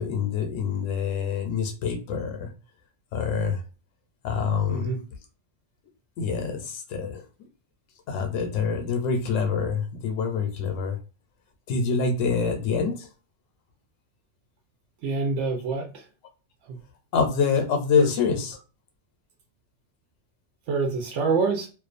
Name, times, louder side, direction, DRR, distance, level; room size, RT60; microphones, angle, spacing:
voice 1, 0.0-2.5 3.1-3.6 4.2-4.9 6.2-7.2 8.1-11.0 11.7-13.1 17.1-18.6, left 5 dB, 85° left, 5 dB, 0.9 m, -26 dB
voice 2, 4.7-5.0 15.0-16.1 16.7-16.8 18.0-18.1 20.7-21.7, right 4 dB, 75° right, 1 dB, 0.9 m, -26 dB
2.4 x 2.2 x 2.4 m, 0.34 s
omnidirectional pair, 1.3 m